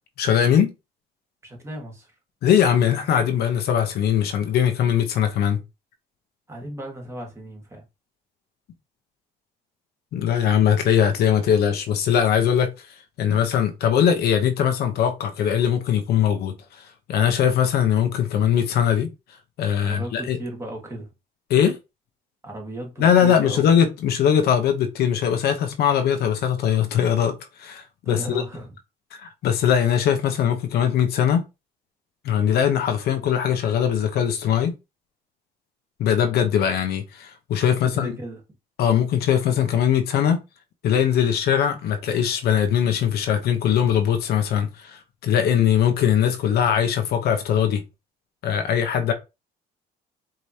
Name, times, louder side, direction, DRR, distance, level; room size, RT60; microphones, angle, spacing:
voice 1, 0.2-0.7 2.4-5.6 10.1-12.7 13.2-19.1 19.6-20.4 21.5-21.8 23.0-28.4 29.2-31.4 32.2-34.7 36.0-38.1 38.8-40.4 40.8-47.8 48.4-49.1, left 9 dB, 70° left, 0.8 m, -21 dB
voice 2, 1.4-2.1 6.5-7.8 19.8-21.1 22.4-23.6 28.0-28.8 37.7-38.4, right 1 dB, 15° right, 1.6 m, -35 dB
4.9 x 2.9 x 2.8 m
cardioid pair, 110°, 17 cm